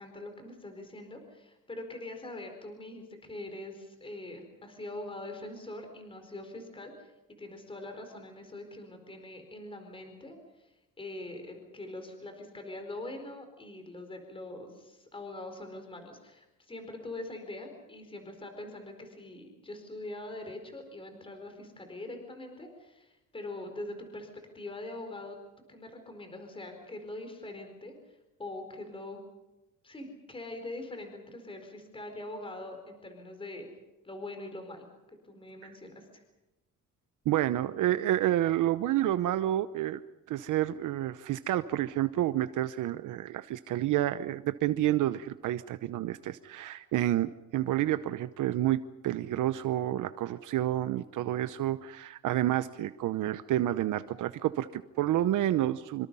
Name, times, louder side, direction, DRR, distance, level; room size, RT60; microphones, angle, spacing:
voice 1, 0.0-7.1 7.4-24.3 24.5-25.4 25.7-29.2 29.8-33.7 34.0-36.2, left 2 dB, 15° left, 5 dB, 4.6 m, -43 dB
voice 2, 37.3-40.0 40.3-56.1, right 13 dB, 65° right, 12 dB, 0.9 m, -29 dB
26.5 x 25.5 x 5.6 m, 1.0 s
cardioid pair, 140°, 33 cm